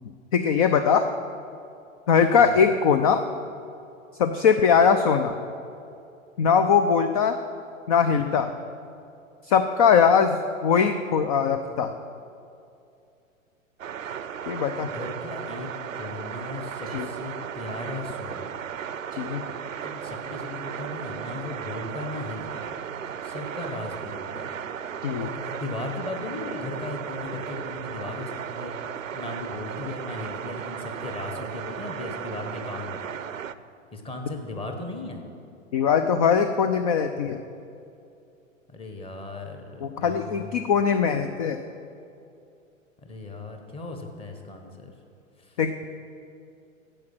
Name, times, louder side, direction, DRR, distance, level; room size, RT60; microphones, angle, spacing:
voice 1, 0.3-1.1 2.1-3.2 4.2-5.4 6.4-7.4 7.9-8.5 9.4-11.9 14.5-14.9 16.9-17.1 19.1-19.4 25.0-25.3 35.7-37.4 39.8-41.6 45.6-45.9, left 6 dB, 30° left, 9 dB, 0.4 m, -21 dB
sound 1, 13.8-33.5, right 8 dB, 75° right, 0.6 m, -35 dB
voice 2, 14.8-15.7 15.9-18.6 19.8-22.7 23.2-24.6 25.1-28.8 29.1-33.1 33.9-35.2 38.7-40.7 43.0-44.9 45.4-45.6, left 2 dB, 15° left, 4 dB, 1.2 m, -37 dB
10.0 x 7.8 x 8.0 m, 2.6 s
figure-of-eight pair, 100°, 40 cm